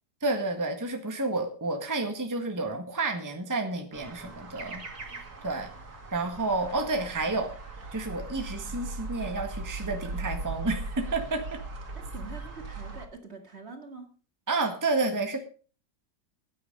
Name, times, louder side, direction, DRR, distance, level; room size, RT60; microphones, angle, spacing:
voice 1, 0.2-4.8 5.1-5.7 6.1-7.5 7.9-11.6 14.5-15.4, right 3 dB, 10° right, 5 dB, 1.6 m, -30 dB
sound 1, 3.9-13.1, right 3 dB, 60° right, 2.9 m, -39 dB
voice 2, 11.9-14.1, right 4 dB, 40° right, 6 dB, 2.2 m, -45 dB
15.5 x 9.5 x 5.3 m, 0.38 s
omnidirectional pair, 1.9 m